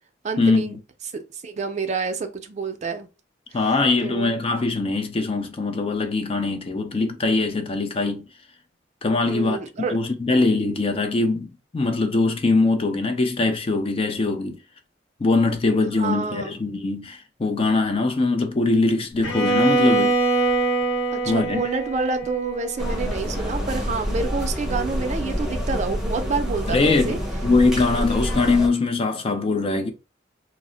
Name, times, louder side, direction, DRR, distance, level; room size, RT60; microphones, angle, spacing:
voice 1, 0.2-0.8 1.1-3.1 3.5-3.7 4.0-4.4 9.3-10.0 16.0-16.6 21.1-27.2, right 4 dB, 40° right, 0.4 m, -28 dB
voice 2, 3.5-8.2 9.0-9.6 9.9-14.6 15.2-20.2 21.3-21.6 26.7-29.9, left 3 dB, 30° left, 0.4 m, -22 dB
Bowed string instrument, 19.2-23.2, right 3 dB, 80° left, 1.1 m, -23 dB
sound 1, 22.8-28.7, equal, 5° right, 0.7 m, -27 dB
2.0 x 2.0 x 3.7 m
head